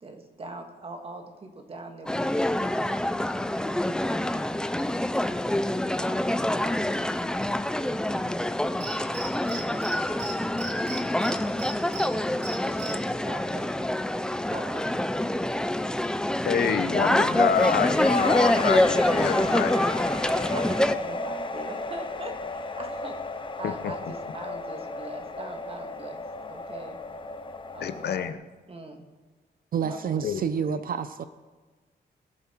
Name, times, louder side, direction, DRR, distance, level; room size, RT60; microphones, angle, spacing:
voice 1, 0.0-2.5 5.9-6.5 7.8-9.3 9.6-10.5 11.5-11.7 12.1-14.0 14.5-15.1 20.4-23.2 23.6-26.2 26.5-27.0 27.7-28.1 28.7-29.1 29.8-30.3, right 2 dB, 35° right, 4 dB, 1.8 m, -42 dB
sound 1, 2.1-20.9, left 1 dB, 5° left, 0.5 m, -26 dB
Cricket, 8.8-9.9 10.2-10.3 10.6-12.1 12.4-12.9, right 4 dB, 85° right, 1.9 m, -37 dB
voice 2, 16.4-19.8 23.6-23.9 27.8-28.4 30.2-30.5, left 8 dB, 70° left, 10 dB, 0.8 m, -28 dB
sound 2, 17.5-28.3, left 3 dB, 30° left, 0.9 m, -33 dB
voice 3, 29.7-31.2, right 7 dB, 55° right, 12 dB, 0.6 m, -28 dB
22.0 x 7.4 x 4.5 m, 1.3 s
cardioid pair, 115°, 17 cm